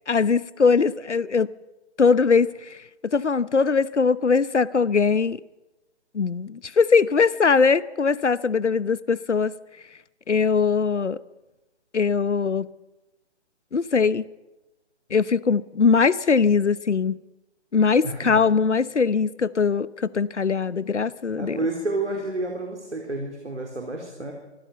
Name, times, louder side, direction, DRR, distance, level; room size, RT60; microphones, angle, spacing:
voice 1, 0.1-1.5 2.0-5.4 6.1-9.5 10.3-11.2 11.9-12.7 13.7-14.2 15.1-17.2 17.7-21.6, left 5 dB, 90° left, 0.9 m, -21 dB
voice 2, 18.0-18.4 21.4-24.3, right 2 dB, 90° right, 4.0 m, -30 dB
25.0 x 15.5 x 6.8 m
figure-of-eight pair, 140°, 34 cm